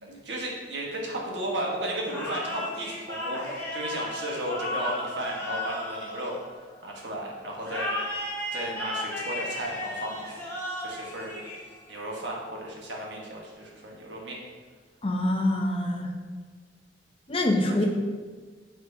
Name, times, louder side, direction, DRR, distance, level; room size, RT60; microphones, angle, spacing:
voice 1, 0.0-6.4 6.8-7.9 8.5-11.3 11.9-14.4 17.7-17.9, right 1 dB, 85° right, -2 dB, 1.4 m, -34 dB
sound 1, 2.1-6.9 7.6-12.0, left 1 dB, 15° left, 1.5 m, -34 dB
voice 2, 15.0-16.1 17.3-17.9, left 1 dB, 30° left, 2 dB, 0.7 m, -25 dB
9.5 x 4.2 x 2.7 m, 1.4 s
head